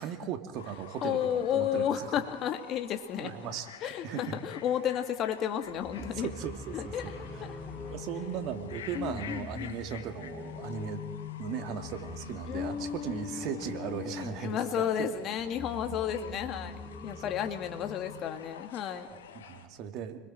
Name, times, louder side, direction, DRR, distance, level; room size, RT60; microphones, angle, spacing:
voice 1, 0.0-2.1 3.2-4.4 6.0-7.1 7.9-11.0 11.4-15.1 19.1-20.3, right 8 dB, 60° right, 7 dB, 2.6 m, -38 dB
Fowl / Bird, 0.5-19.7, left 8 dB, 85° left, 2.1 m, -50 dB
voice 2, 1.0-3.3 3.8-6.3 6.7-7.1 7.4-7.6 8.9-9.8 12.5-19.1, left 9 dB, 50° left, 6 dB, 2.2 m, -33 dB
sound 1, 5.6-18.4, left 5 dB, 15° left, 5.7 m, -44 dB
sound 2, 6.0-8.9, right 1 dB, 10° right, 1.1 m, -48 dB
30.0 x 22.0 x 4.6 m, 1.1 s
hypercardioid pair, 80°, 0 cm